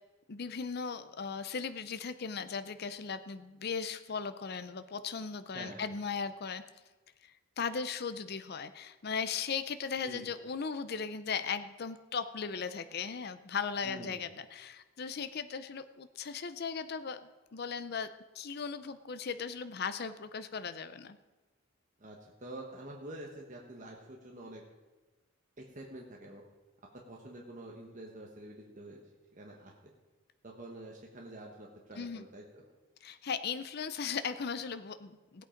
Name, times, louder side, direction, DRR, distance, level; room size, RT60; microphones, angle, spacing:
voice 1, 0.3-6.6 7.2-17.2 17.5-18.1 18.3-21.2 32.0-32.2 33.0-35.4, left 6 dB, 50° left, 11 dB, 0.5 m, -37 dB
voice 2, 5.5-5.9 10.0-10.3 13.8-14.2 22.0-24.6 25.6-26.4 26.9-29.0 29.3-29.7 30.4-32.6, right 1 dB, 35° right, 0 dB, 1.2 m, -47 dB
17.0 x 8.4 x 5.1 m, 1.2 s
head